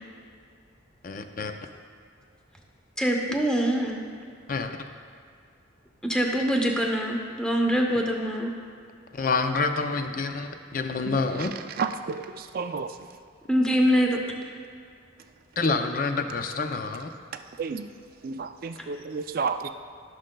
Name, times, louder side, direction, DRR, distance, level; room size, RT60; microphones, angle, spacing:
voice 1, 1.0-1.5 4.5-4.7 9.1-11.5 15.6-17.1, left 4 dB, 45° left, 6 dB, 0.5 m, -27 dB
voice 2, 3.0-4.0 6.1-8.5 13.5-14.2, equal, 5° left, 0 dB, 0.8 m, -24 dB
voice 3, 11.8-12.2 12.5-12.9 17.6-17.9 18.2-19.6, right 5 dB, 45° right, 9 dB, 0.3 m, -30 dB
15.0 x 6.4 x 2.3 m, 2.3 s
head